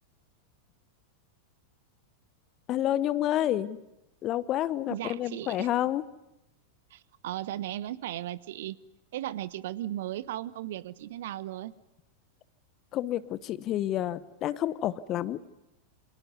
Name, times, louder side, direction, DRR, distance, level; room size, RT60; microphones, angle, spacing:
voice 1, 2.7-3.8 4.2-6.0 12.9-15.4, left 12 dB, 35° left, 17 dB, 1.0 m, -29 dB
voice 2, 4.9-5.7 6.9-8.8 9.1-11.7, right 13 dB, 55° right, 17 dB, 1.1 m, -36 dB
29.0 x 26.5 x 5.4 m, 0.92 s
figure-of-eight pair, 90°, 0 cm